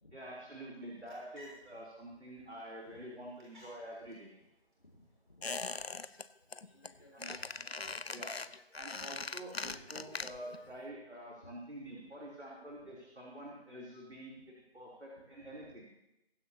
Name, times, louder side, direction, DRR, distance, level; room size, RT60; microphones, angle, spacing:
voice 1, 0.1-4.3 7.1-7.4 8.1-8.4 8.8-15.9, right 1 dB, 85° right, -4 dB, 3.6 m, -47 dB
sound 1, 0.8-8.6, equal, 50° right, 5.8 m, -63 dB
voice 2, 4.8-5.5 6.7-8.1 9.7-10.1 10.6-10.7 11.4-11.5 12.0-12.1 12.8-12.9 14.3-14.4 15.3-15.7, left 1 dB, 35° left, -6 dB, 2.3 m, -61 dB
Squeak, 5.4-6.2 6.5-6.9 7.2-10.6 10.9-11.0, left 4 dB, 70° left, 0.7 m, -41 dB
23.0 x 10.0 x 2.9 m, 0.90 s
figure-of-eight pair, 175°, 32 cm